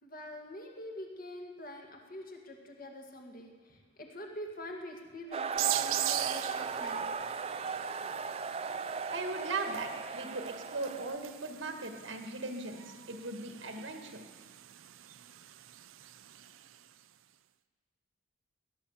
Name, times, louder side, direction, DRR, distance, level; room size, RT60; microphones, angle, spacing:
voice 1, 0.0-7.1, left 1 dB, 45° left, 1 dB, 1.9 m, -45 dB
sound 1, 5.3-11.1, right 5 dB, 30° right, 0.4 m, -37 dB
sound 2, 5.6-16.9, right 14 dB, 85° right, 0.5 m, -41 dB
voice 2, 9.1-14.2, right 3 dB, 65° right, 5 dB, 1.7 m, -38 dB
17.0 x 11.0 x 7.2 m, 1.5 s
head